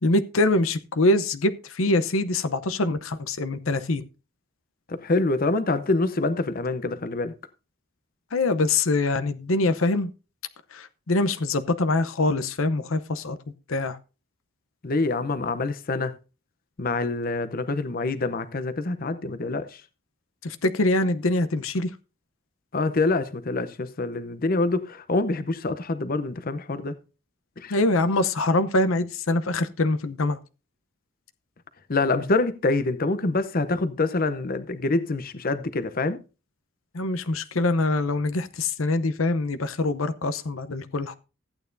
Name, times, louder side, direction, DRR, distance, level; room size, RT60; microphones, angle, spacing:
voice 1, 0.0-4.0 8.3-10.1 10.7-13.4 13.7-14.0 20.4-21.9 27.7-30.4 36.9-41.1, left 2 dB, 90° left, 0.8 m, -24 dB
voice 2, 4.9-7.3 14.8-16.1 16.8-19.8 22.7-26.9 27.6-27.8 31.9-36.2, left 3 dB, 45° left, 0.7 m, -26 dB
14.5 x 9.0 x 2.6 m
head